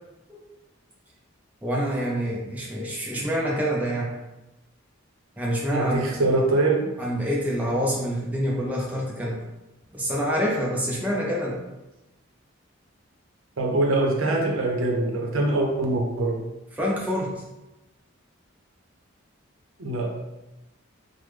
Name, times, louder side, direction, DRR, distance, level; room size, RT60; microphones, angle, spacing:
voice 1, 1.6-4.1 5.4-6.1 7.0-9.4 9.9-11.6 16.7-17.4, equal, 5° right, -4 dB, 0.4 m, -26 dB
voice 2, 5.7-6.9 13.6-16.5 19.8-20.1, right 2 dB, 75° right, 0 dB, 0.6 m, -23 dB
3.3 x 2.1 x 3.2 m, 1.0 s
head